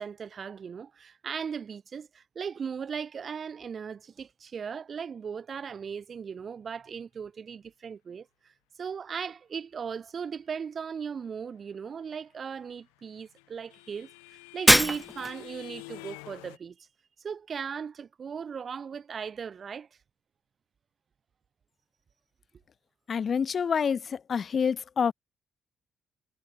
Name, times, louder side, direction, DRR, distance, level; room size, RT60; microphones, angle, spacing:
voice 1, 0.0-8.5 8.8-14.1 14.5-16.9 17.2-19.9, right 6 dB, 45° right, 6.6 m, -37 dB
sound 1, 12.7-16.6, left 40 dB or more, 75° left, 7.0 m, -48 dB
Shatter, 14.7-15.5, equal, 5° left, 1.5 m, -21 dB
voice 2, 23.1-25.1, left 6 dB, 45° left, 1.9 m, -27 dB
hypercardioid pair, 45°, 0 cm